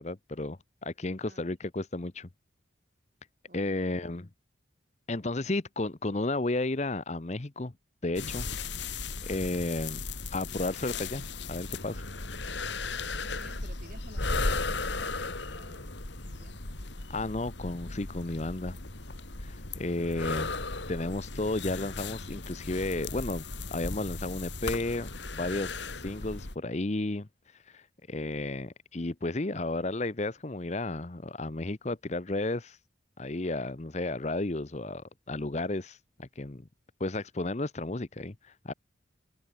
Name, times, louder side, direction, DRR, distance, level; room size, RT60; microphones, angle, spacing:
voice 1, 0.0-2.3 3.5-4.3 5.1-7.7 8.0-8.5 9.2-10.0 10.3-11.2 11.5-12.1 17.1-18.8 19.4-20.5 20.9-23.4 23.7-27.3 27.7-27.8 28.1-32.8 33.2-36.7 37.0-38.7, left 2 dB, 35° left, 0.9 m, -33 dB
voice 2, 3.5-4.0 13.1-15.9 16.2-16.6, right 1 dB, 45° right, 4.4 m, -53 dB
sound 1, 8.2-26.6, left 3 dB, 70° left, 2.5 m, -36 dB
head